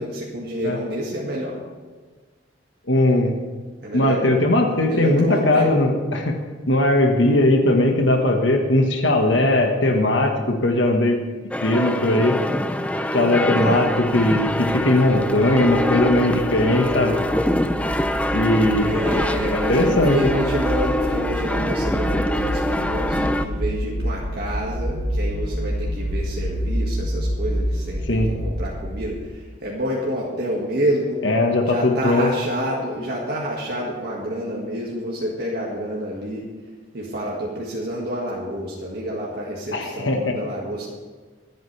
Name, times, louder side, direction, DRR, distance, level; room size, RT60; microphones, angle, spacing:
voice 1, 0.0-1.6 3.8-4.4 4.9-5.8 13.6-13.8 18.8-29.2 29.6-31.2 31.6-36.5 36.9-40.9, equal, 60° right, -4 dB, 1.9 m, -28 dB
voice 2, 2.9-3.3 3.9-6.3 6.7-11.2 11.6-12.4 13.1-17.2 18.3-19.0 19.5-20.2 28.1-28.3 31.2-32.3 39.7-40.3, left 1 dB, 85° left, 3 dB, 1.5 m, -19 dB
sound 1, 11.5-23.5, left 1 dB, 5° left, 0.5 m, -24 dB
sound 2, 14.1-29.4, equal, 30° right, 3.3 m, -28 dB
25.0 x 9.1 x 3.4 m, 1.4 s
head